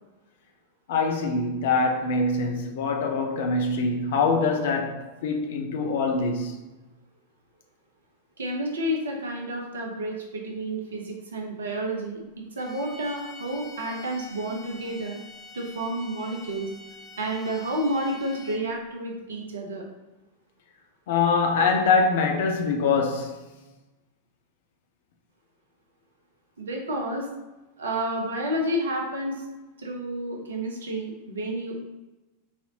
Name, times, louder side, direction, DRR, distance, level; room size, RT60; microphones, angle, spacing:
voice 1, 0.9-6.6 21.1-23.4, left 4 dB, 55° left, 0.5 m, -24 dB
voice 2, 8.4-15.2 15.5-16.7 17.2-19.8 26.6-27.3 27.8-29.4 29.8-31.8, right 1 dB, 65° right, 0.7 m, -30 dB
sound 1, 12.6-18.8, left 3 dB, 10° right, 0.6 m, -46 dB
4.0 x 2.7 x 2.9 m
figure-of-eight pair, 90°, 0 cm